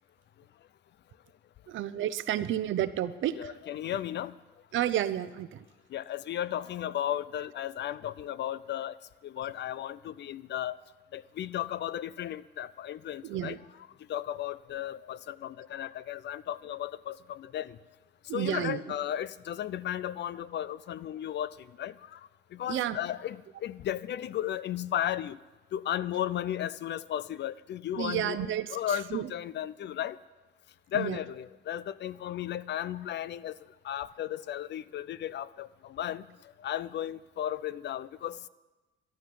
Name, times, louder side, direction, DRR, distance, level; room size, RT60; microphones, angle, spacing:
voice 1, 1.7-3.5 4.7-5.6 13.2-13.6 18.3-18.8 22.7-23.0 28.0-28.7 29.1-29.3 30.9-31.2, right 11 dB, 75° right, 14 dB, 0.8 m, -31 dB
voice 2, 3.3-4.3 5.9-9.0 9.2-10.8 11.1-17.8 18.3-22.2 22.5-25.4 25.7-30.2 30.9-33.6 33.8-36.3 36.6-38.4, left 11 dB, 60° left, 18 dB, 0.5 m, -35 dB
12.5 x 11.5 x 7.0 m, 1.2 s
cardioid pair, 90°, 20 cm